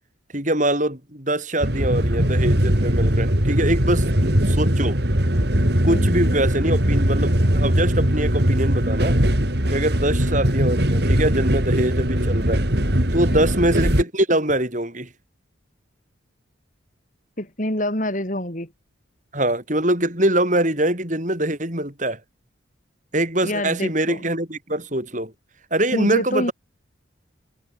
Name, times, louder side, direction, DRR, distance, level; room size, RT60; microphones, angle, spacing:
voice 1, 0.3-5.0 5.8-9.2 9.7-12.6 13.1-15.1 19.3-22.2 23.1-25.3 25.7-26.5, right 1 dB, 40° right, 6.6 m, -23 dB
sound 1, 1.6-14.0, equal, 55° right, 4.0 m, -20 dB
voice 2, 5.8-6.2 13.3-13.5 17.4-18.7 23.4-24.3 25.9-26.5, left 1 dB, 40° left, 5.3 m, -26 dB
head